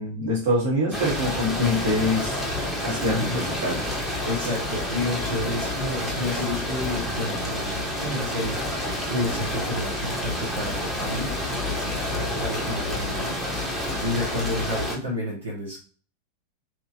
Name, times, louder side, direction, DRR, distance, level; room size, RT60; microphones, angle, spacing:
voice 1, 0.0-2.4 2.8-3.8, left 1 dB, 50° right, -3 dB, 1.5 m, -25 dB
sound 1, 0.9-15.0, left 1 dB, ahead, 1.0 m, -29 dB
voice 2, 3.1-3.5 4.2-8.7 9.1-13.4 14.0-15.8, left 1 dB, 70° right, -6 dB, 1.1 m, -30 dB
3.0 x 2.9 x 2.6 m, 0.39 s
figure-of-eight pair, 90°, 0 cm